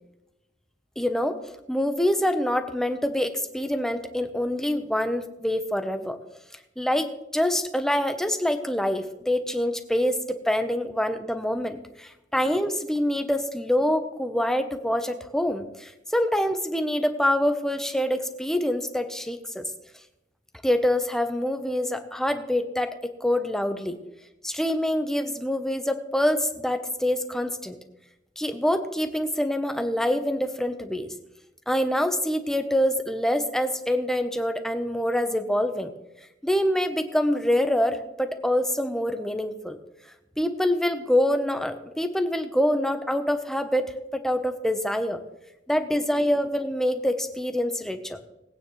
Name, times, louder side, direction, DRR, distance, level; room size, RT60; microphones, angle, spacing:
voice 1, 1.0-6.2 6.8-19.7 20.6-24.0 24.4-27.8 28.4-31.1 31.7-35.9 36.4-39.8 40.4-45.2 45.7-48.2, left 1 dB, 5° left, 8 dB, 0.8 m, -25 dB
20.0 x 8.9 x 3.1 m, 0.94 s
head